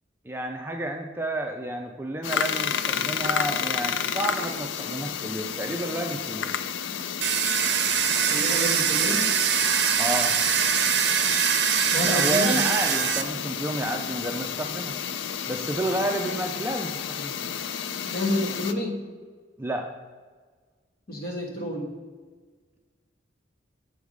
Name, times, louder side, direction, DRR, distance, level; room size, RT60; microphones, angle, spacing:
voice 1, 0.2-6.5 10.0-10.4 12.0-15.0 15.4-17.3 19.6-19.9, right 1 dB, 10° right, 3 dB, 0.4 m, -30 dB
sound 1, 2.2-18.7, left 7 dB, 80° left, 0.4 m, -31 dB
Domestic sounds home sounds, 7.2-13.2, right 8 dB, 60° right, 0.6 m, -23 dB
voice 2, 8.3-9.3 11.9-12.6 16.2-16.3 18.0-19.0 21.1-21.9, left 1 dB, 50° left, 0 dB, 1.5 m, -29 dB
7.2 x 3.5 x 6.2 m, 1.5 s
head